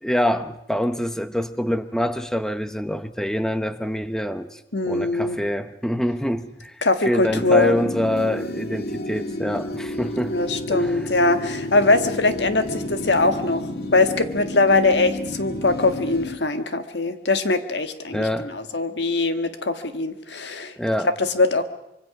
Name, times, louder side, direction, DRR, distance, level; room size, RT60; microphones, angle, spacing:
voice 1, 0.0-10.4 10.7-11.1 18.1-18.5 20.8-21.1, equal, 5° left, 10 dB, 0.9 m, -25 dB
voice 2, 4.7-5.4 6.8-7.7 10.3-13.6 13.9-20.7 21.0-21.6, left 3 dB, 90° left, 9 dB, 1.6 m, -21 dB
sound 1, 7.3-16.4, left 1 dB, 60° left, 1.9 m, -31 dB
25.0 x 23.5 x 6.0 m, 0.82 s
head